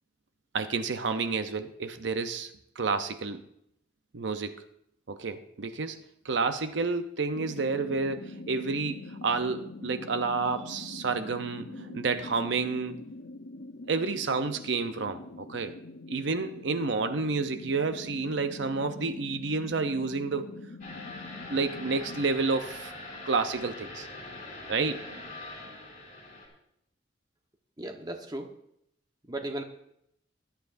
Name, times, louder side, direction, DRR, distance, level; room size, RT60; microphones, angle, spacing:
voice 1, 0.5-3.4 4.1-4.5 5.1-6.0 6.2-13.0 13.9-15.7 16.1-20.5 21.5-22.9 23.3-24.1 24.7-25.0, right 4 dB, 80° right, 9 dB, 0.7 m, -30 dB
sound 1, 7.3-22.3, left 2 dB, 80° left, 0.7 m, -44 dB
sound 2, 20.8-26.5, left 2 dB, 45° left, 4.9 m, -43 dB
voice 2, 27.8-28.5 29.3-29.6, right 1 dB, 20° right, 4 dB, 1.1 m, -36 dB
21.0 x 11.5 x 2.6 m, 0.75 s
head